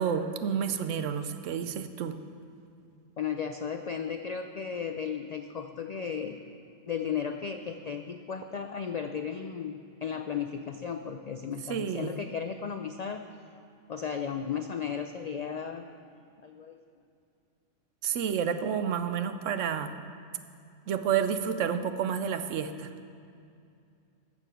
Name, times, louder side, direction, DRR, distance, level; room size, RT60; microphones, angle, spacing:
voice 1, 0.0-2.1 11.7-12.2 18.0-20.0 20.9-22.9, right 7 dB, 85° right, 10 dB, 1.0 m, -30 dB
voice 2, 3.2-6.4 6.9-13.2 13.9-15.9 16.4-16.8, left 7 dB, 75° left, 7 dB, 0.3 m, -35 dB
14.0 x 6.9 x 6.1 m, 2.5 s
omnidirectional pair, 1.3 m